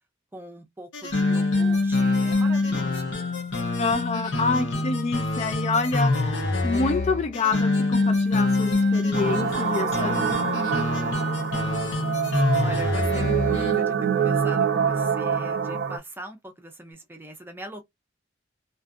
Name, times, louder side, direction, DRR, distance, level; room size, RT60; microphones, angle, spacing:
voice 1, 0.3-3.2 9.6-10.5 12.2-17.8, right 1 dB, 10° right, 0.6 m, -41 dB
sound 1, 0.9-13.8, left 2 dB, 65° left, 0.8 m, -25 dB
voice 2, 3.8-6.4 6.6-10.1, left 4 dB, 35° left, 0.3 m, -27 dB
sound 2, 9.1-16.0, right 7 dB, 55° right, 0.4 m, -25 dB
2.5 x 2.5 x 2.4 m
head